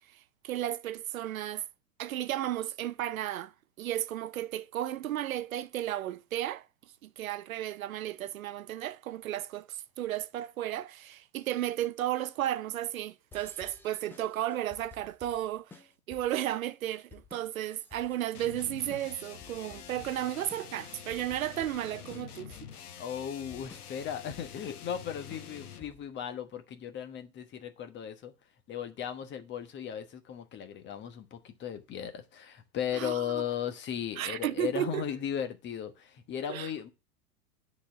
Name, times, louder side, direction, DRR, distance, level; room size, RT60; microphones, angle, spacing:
voice 1, 0.1-1.7 2.0-3.5 3.8-6.7 7.0-22.5 32.9-33.4 34.2-35.0 36.5-36.7, right 13 dB, 60° right, 0.6 m, -34 dB
sound 1, 13.3-26.2, left 5 dB, 5° left, 0.5 m, -54 dB
sound 2, 18.3-26.0, left 8 dB, 70° left, 1.1 m, -47 dB
voice 2, 23.0-28.3 28.7-36.9, left 9 dB, 25° left, 1.2 m, -36 dB
9.8 x 4.3 x 7.1 m
figure-of-eight pair, 105°, 46 cm